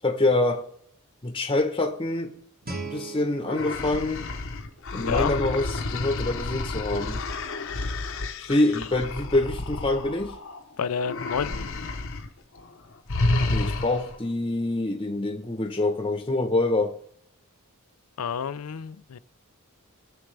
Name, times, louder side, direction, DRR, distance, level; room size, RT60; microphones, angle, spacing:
voice 1, 0.0-0.6 1.2-2.3 2.8-4.2 4.9-7.2 8.5-10.3 13.5-16.9, left 2 dB, 25° left, 0.9 m, -25 dB
Guitar, 2.6-5.4, right 3 dB, 45° right, 1.7 m, -40 dB
sound 1, 3.5-10.6 11.0-12.3 12.6-12.7 13.1-14.2, left 2 dB, 65° left, 0.9 m, -30 dB
voice 2, 4.9-5.3 10.8-11.7 18.2-19.2, left 6 dB, 85° left, 0.5 m, -29 dB
20.5 x 7.0 x 3.3 m
head